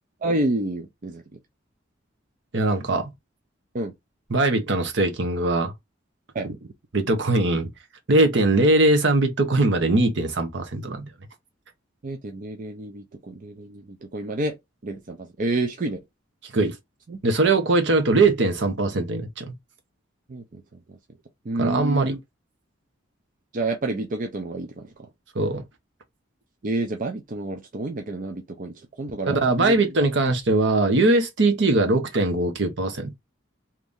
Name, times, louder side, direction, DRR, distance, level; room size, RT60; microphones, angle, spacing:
voice 1, 0.2-1.4 3.7-3.9 6.3-6.7 12.0-14.6 14.8-16.0 17.1-17.2 20.3-21.0 21.4-22.2 23.5-25.1 26.6-29.8, right 2 dB, 45° right, 0.5 m, -29 dB
voice 2, 2.5-3.1 4.3-5.7 6.9-7.7 8.1-11.1 16.5-16.8 17.2-19.5 21.6-22.1 25.3-25.6 29.3-33.2, right 2 dB, 65° right, 0.9 m, -21 dB
2.9 x 2.6 x 3.5 m
head